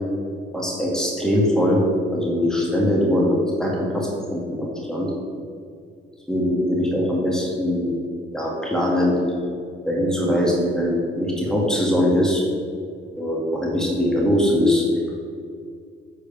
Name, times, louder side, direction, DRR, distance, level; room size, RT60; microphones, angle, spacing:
voice 1, 0.5-1.8 2.1-5.1 6.3-7.9 8.3-9.2 9.8-12.4 13.1-14.8, left 1 dB, 5° left, -3 dB, 2.1 m, -21 dB
8.4 x 4.9 x 7.0 m, 2.2 s
cardioid pair, 90°, 20 cm